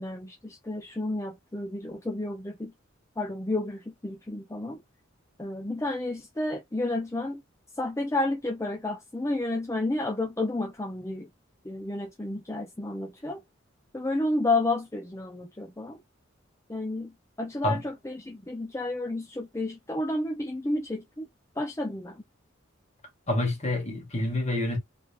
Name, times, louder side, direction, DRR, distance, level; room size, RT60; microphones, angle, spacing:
voice 1, 0.0-2.7 3.2-4.8 5.4-7.4 7.7-11.3 11.6-13.4 13.9-16.0 16.7-21.3 21.6-22.2, left 2 dB, 15° left, 0.5 m, -31 dB
voice 2, 23.3-24.8, left 1 dB, 35° left, 1.8 m, -27 dB
3.6 x 3.3 x 2.9 m
head